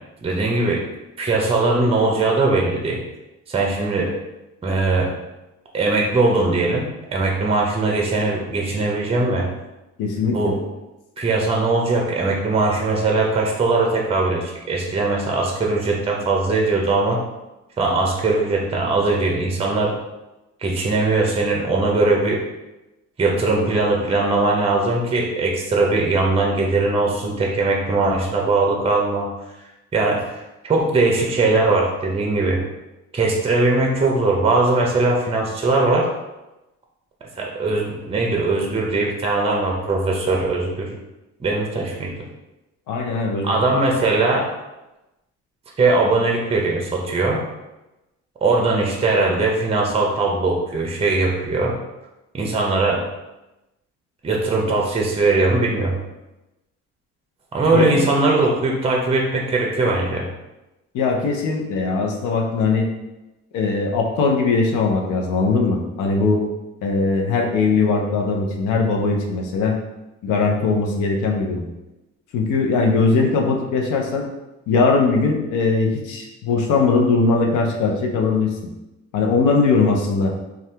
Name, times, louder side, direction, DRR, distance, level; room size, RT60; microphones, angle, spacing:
voice 1, 0.2-0.8 1.2-3.0 3.5-4.1 4.6-5.1 5.7-9.5 10.3-10.6 11.2-17.2 17.8-19.9 20.6-22.4 23.2-29.3 29.9-32.6 33.1-36.1 37.4-41.0 41.4-42.1 43.4-44.5 45.8-47.4 48.4-51.8 52.3-53.0 54.2-56.0 57.5-60.3, right 3 dB, 20° right, 0 dB, 0.5 m, -20 dB
voice 2, 10.0-10.6 42.9-43.6 57.7-58.4 60.9-62.9 63.5-66.4 66.8-69.8 70.2-71.6 72.3-74.3 74.7-78.5 79.1-80.3, left 4 dB, 85° left, 1 dB, 0.6 m, -20 dB
2.7 x 2.3 x 3.2 m, 1.0 s
cardioid pair, 90°, 30 cm